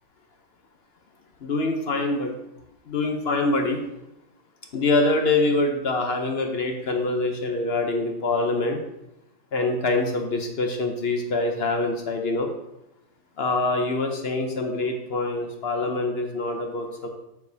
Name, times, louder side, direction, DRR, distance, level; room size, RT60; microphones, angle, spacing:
voice 1, 1.4-2.3 2.9-3.8 4.7-8.8 9.5-12.5 13.4-17.1, left 2 dB, 55° left, 4 dB, 0.8 m, -25 dB
7.0 x 7.0 x 2.7 m, 0.88 s
omnidirectional pair, 1.7 m